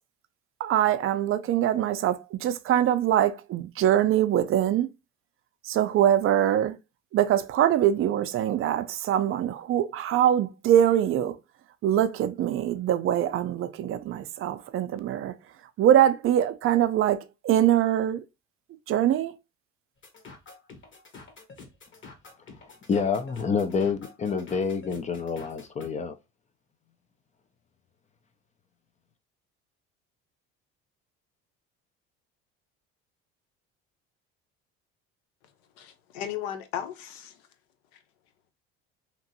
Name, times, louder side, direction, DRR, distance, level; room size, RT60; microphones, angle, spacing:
voice 1, 0.6-4.9 5.6-6.8 7.1-11.4 11.8-15.4 15.8-18.2 18.9-19.3, right 11 dB, 45° right, 0.4 m, -23 dB
sound 1, 20.0-25.9, left 4 dB, 40° left, 1.1 m, -48 dB
voice 2, 22.9-26.1, left 5 dB, 25° left, 0.3 m, -27 dB
voice 3, 35.8-37.4, left 10 dB, 85° left, 0.6 m, -35 dB
2.9 x 2.6 x 2.6 m
supercardioid pair, 85°, 30 cm